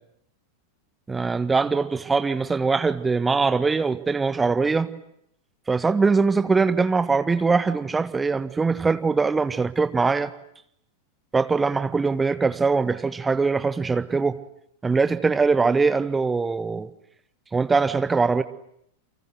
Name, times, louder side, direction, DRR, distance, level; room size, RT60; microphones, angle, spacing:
voice 1, 1.1-4.9 5.7-10.3 11.3-14.4 14.8-16.9 17.5-18.4, right 4 dB, 10° right, 1.6 m, -22 dB
30.0 x 24.5 x 7.8 m
figure-of-eight pair, 90°, 0 cm